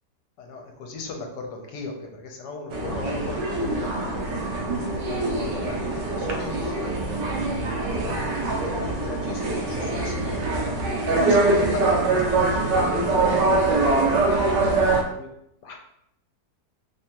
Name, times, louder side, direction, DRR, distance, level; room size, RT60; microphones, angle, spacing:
voice 1, 0.4-4.4 4.7-6.9 7.3-7.4 8.0-8.4 8.6-10.6 11.1-15.3 15.6-15.8, left 3 dB, 75° left, 2 dB, 1.3 m, -37 dB
sound 1, 2.7-15.0, right 2 dB, 80° right, 1.3 m, -23 dB
3.4 x 3.4 x 2.8 m, 0.77 s
omnidirectional pair, 1.9 m